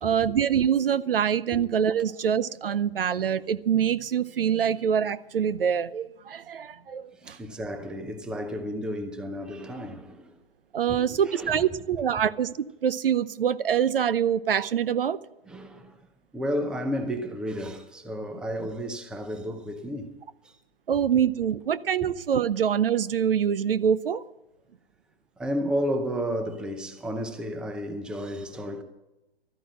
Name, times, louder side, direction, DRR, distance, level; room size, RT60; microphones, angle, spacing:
voice 1, 0.0-7.4 10.7-15.2 20.9-24.2, right 8 dB, 65° right, 0.7 m, -25 dB
voice 2, 7.2-10.4 10.9-11.0 11.3-11.6 15.5-16.0 16.3-20.1 20.4-20.5 25.4-28.8, equal, 5° right, 0.7 m, -32 dB
13.5 x 9.9 x 7.7 m
hypercardioid pair, 135°, 30 cm